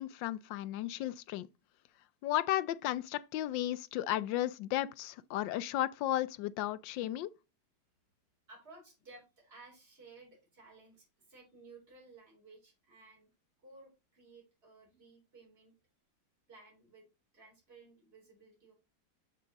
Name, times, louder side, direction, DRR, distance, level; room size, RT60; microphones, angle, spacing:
voice 1, 0.0-1.5 2.2-7.3, left 14 dB, 85° left, 1.3 m, -34 dB
voice 2, 8.5-13.3 13.6-15.7 16.5-17.1 17.3-18.7, right 3 dB, 30° right, 4.1 m, -57 dB
6.7 x 6.1 x 4.0 m
omnidirectional pair, 2.0 m